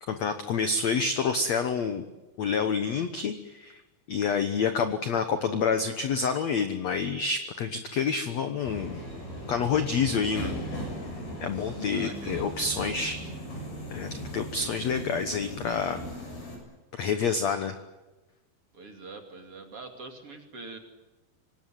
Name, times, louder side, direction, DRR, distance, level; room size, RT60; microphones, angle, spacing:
voice 1, 0.0-2.0 2.4-3.8 4.1-9.0 9.5-10.6 11.4-13.2 13.9-16.0 16.9-17.8, left 5 dB, 80° left, 9 dB, 1.5 m, -28 dB
Subway metro underground, 8.7-16.6, equal, 50° left, 8.8 m, -38 dB
voice 2, 11.9-12.9 18.7-20.8, right 3 dB, 35° right, 5 dB, 3.0 m, -44 dB
25.5 x 19.5 x 9.2 m, 1.1 s
omnidirectional pair, 5.0 m